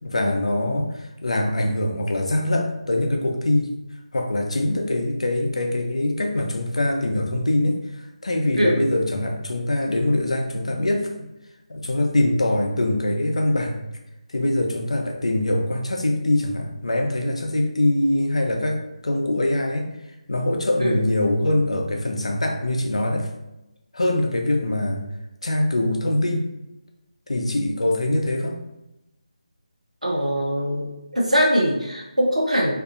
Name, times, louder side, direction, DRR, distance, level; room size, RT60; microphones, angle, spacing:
voice 1, 0.0-3.7 4.1-7.8 8.2-11.1 11.7-13.8 14.3-19.9 20.3-23.3 23.9-25.1 25.4-26.5 27.3-28.6, left 1 dB, 65° left, 2 dB, 0.5 m, -23 dB
voice 2, 30.0-30.9 31.1-32.7, equal, 85° right, -3 dB, 0.9 m, -21 dB
2.6 x 2.5 x 2.5 m, 0.93 s
figure-of-eight pair, 155°, 4 cm